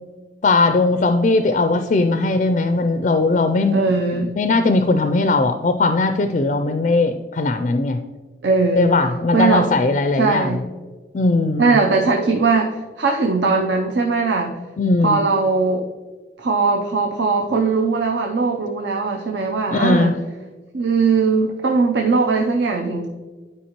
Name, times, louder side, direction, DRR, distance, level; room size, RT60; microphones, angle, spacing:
voice 1, 0.4-3.8 4.2-8.0 8.8-10.6 11.1-11.7 14.8-15.2 19.7-20.1, left 3 dB, 40° left, 8 dB, 0.3 m, -19 dB
voice 2, 3.7-4.4 8.4-8.9 9.3-9.7 10.2-10.6 11.6-14.6 15.0-15.8 16.4-20.2 20.7-23.1, right 4 dB, 80° right, 2 dB, 0.6 m, -19 dB
11.5 x 4.8 x 2.9 m, 1.4 s
head